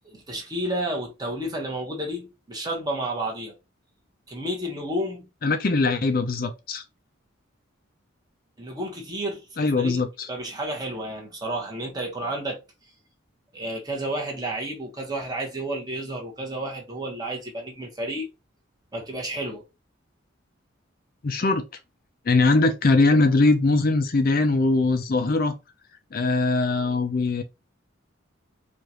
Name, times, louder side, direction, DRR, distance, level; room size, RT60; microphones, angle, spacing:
voice 1, 0.1-3.5 4.3-5.3 8.6-10.0 10.3-12.6 13.5-18.3 18.9-19.6, right 1 dB, 20° right, 1.2 m, -31 dB
voice 2, 5.4-6.8 9.6-10.3 21.2-21.6 22.3-25.5 26.1-27.4, left 3 dB, 45° left, 0.5 m, -21 dB
4.8 x 2.5 x 2.9 m
head